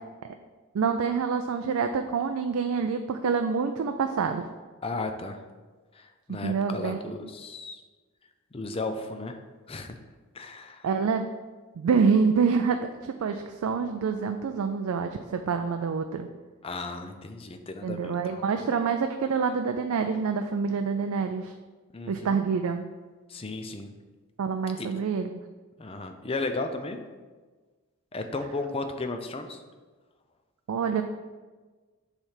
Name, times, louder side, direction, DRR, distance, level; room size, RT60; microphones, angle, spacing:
voice 1, 0.7-4.5 6.3-7.1 10.8-11.2 11.8-16.3 17.8-21.5 22.1-22.8 24.4-25.3 30.7-31.0, right 5 dB, 85° right, 6 dB, 0.4 m, -26 dB
voice 2, 4.8-5.4 5.9-7.8 8.5-9.4 9.7-10.0 10.3-10.9 16.6-18.7 21.9-22.4 23.3-23.9 24.8-24.9 25.8-27.0 28.1-29.6, left 3 dB, 25° left, 6 dB, 0.5 m, -35 dB
7.2 x 3.3 x 5.6 m, 1.4 s
head